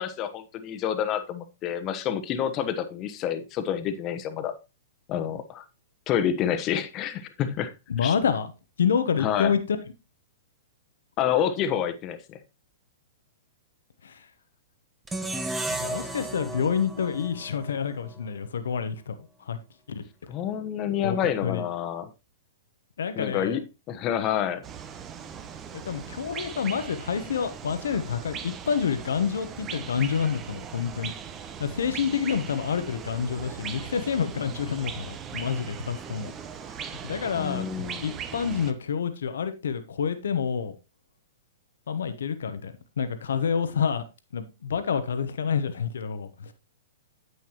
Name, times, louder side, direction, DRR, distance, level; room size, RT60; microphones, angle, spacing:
voice 1, 0.0-4.5 5.1-5.6 6.1-7.7 8.0-8.1 9.2-9.5 11.2-12.4 20.3-22.1 23.2-23.6 23.9-24.6 37.4-38.1, left 9 dB, 35° left, 1.2 m, -28 dB
voice 2, 7.9-8.5 8.8-9.6 14.0-14.3 15.8-19.2 19.5-19.6 19.9-20.0 21.0-21.2 21.4-21.6 23.0-23.6 25.8-31.1 31.6-36.3 37.0-40.8 41.9-44.0 44.3-46.5, left 7 dB, 75° left, 1.1 m, -28 dB
sound 1, 15.1-18.3, right 2 dB, 10° right, 1.3 m, -34 dB
sound 2, 24.6-38.7, right 7 dB, 25° right, 1.0 m, -39 dB
9.6 x 8.3 x 3.0 m
hypercardioid pair, 115°, 0 cm